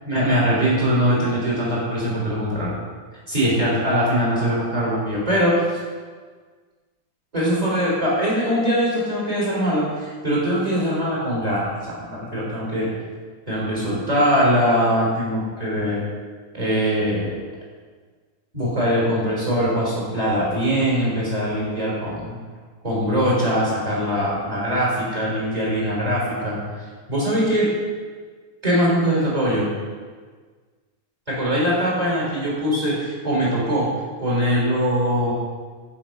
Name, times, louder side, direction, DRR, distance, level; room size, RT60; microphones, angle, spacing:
voice 1, 0.1-2.8 3.3-5.7 7.3-12.9 13.5-16.0 16.5-17.4 18.5-22.4 22.8-26.6 27.1-27.7 28.6-29.7 31.3-33.9 34.2-35.3, equal, 10° right, -6 dB, 3.6 m, -22 dB
11.5 x 9.0 x 5.4 m, 1.5 s
omnidirectional pair, 4.7 m